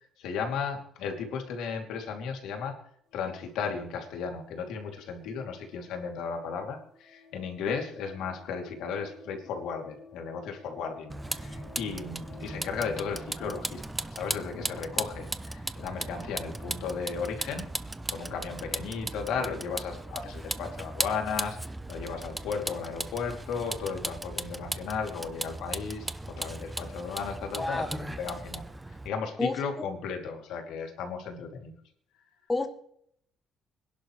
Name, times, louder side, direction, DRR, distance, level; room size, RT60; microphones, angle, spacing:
voice 1, 0.2-2.8 3.1-17.6 18.1-21.6 21.9-28.6 29.0-31.7, left 6 dB, 90° left, 3 dB, 2.9 m, -35 dB
sound 1, 3.1-13.0, left 2 dB, 40° left, 7.2 m, -54 dB
Vehicle, 11.1-29.1, right 2 dB, 10° right, 0.6 m, -37 dB
voice 2, 27.6-28.2 29.4-29.9 32.5-32.7, left 2 dB, 10° left, 7 dB, 1.2 m, -31 dB
25.0 x 11.0 x 3.3 m, 0.67 s
cardioid pair, 150°, 0 cm